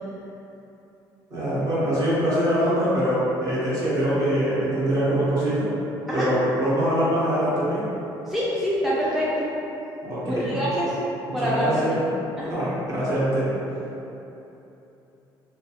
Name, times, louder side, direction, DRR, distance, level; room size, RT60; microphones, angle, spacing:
voice 1, 1.3-5.7 6.1-7.8 10.0-10.6 11.4-12.0 12.5-13.5, equal, 45° right, -10 dB, 1.0 m, -23 dB
voice 2, 8.3-9.5 10.3-10.9 11.3-12.0 12.4-12.6, equal, ahead, -9 dB, 0.3 m, -25 dB
2.4 x 2.2 x 2.8 m, 3.0 s
cardioid pair, 120°, 8 cm